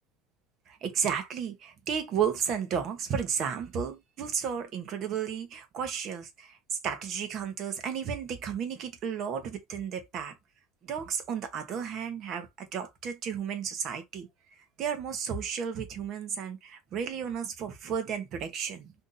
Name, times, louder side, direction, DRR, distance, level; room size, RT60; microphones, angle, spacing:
voice 1, 0.7-10.3 10.8-18.9, right 7 dB, 35° right, 0.8 m, -33 dB
2.7 x 2.6 x 3.7 m
cardioid pair, 170°, 0 cm